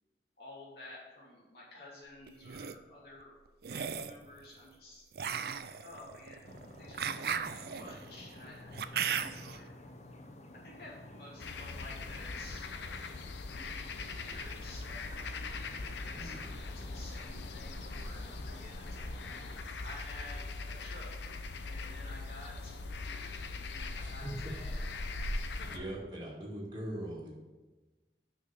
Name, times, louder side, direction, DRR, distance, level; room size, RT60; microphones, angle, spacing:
voice 1, 0.4-3.4 3.7-5.0 5.7-9.7 10.5-12.7 13.4-19.1 19.8-24.9 25.6-25.7, left 2 dB, 60° left, -6 dB, 3.0 m, -52 dB
sound 1, 2.3-2.7 3.6-4.2 5.1-9.6, right 7 dB, 60° right, 0.4 m, -36 dB
sound 2, 6.4-19.6, left 1 dB, 40° left, 0.7 m, -51 dB
voice 2, 7.2-7.6 16.1-16.5 23.9-24.5 25.3-25.4 25.7-27.4, right 1 dB, 25° right, -4 dB, 2.3 m, -42 dB
sound 3, 11.4-25.8, left 3 dB, 85° left, 0.7 m, -41 dB
6.4 x 6.0 x 6.9 m, 1.2 s
head